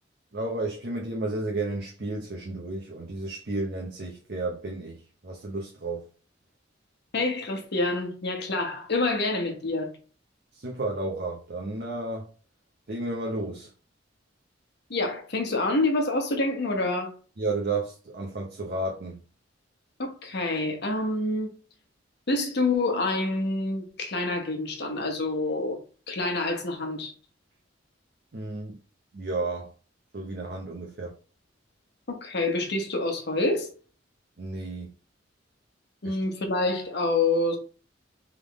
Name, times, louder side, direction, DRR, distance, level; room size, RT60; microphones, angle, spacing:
voice 1, 0.3-6.0 10.5-12.3 12.9-13.7 17.4-19.2 28.3-28.8 29.1-29.7 30.1-31.1 34.4-34.9 36.0-36.2, right 2 dB, 55° right, 0.8 m, -32 dB
voice 2, 7.1-9.9 14.9-17.1 20.0-21.6 22.3-25.8 26.1-27.1 32.1-33.7 36.0-37.6, left 2 dB, 60° left, 1.1 m, -27 dB
3.6 x 3.6 x 3.6 m
head